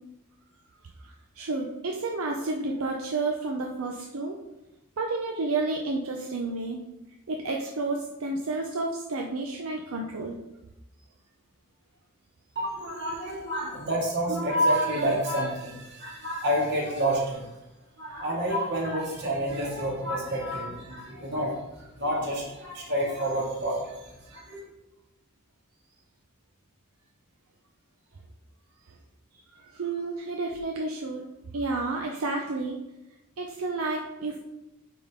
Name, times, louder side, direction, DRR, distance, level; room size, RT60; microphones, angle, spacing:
voice 1, 1.0-4.4 5.0-6.8 7.3-10.4 29.6-31.2 31.5-32.8 33.4-34.4, right 3 dB, 80° right, 1 dB, 0.7 m, -31 dB
voice 2, 12.6-17.5 18.0-24.6, equal, 55° right, -4 dB, 2.3 m, -29 dB
9.2 x 3.8 x 3.7 m, 0.95 s
head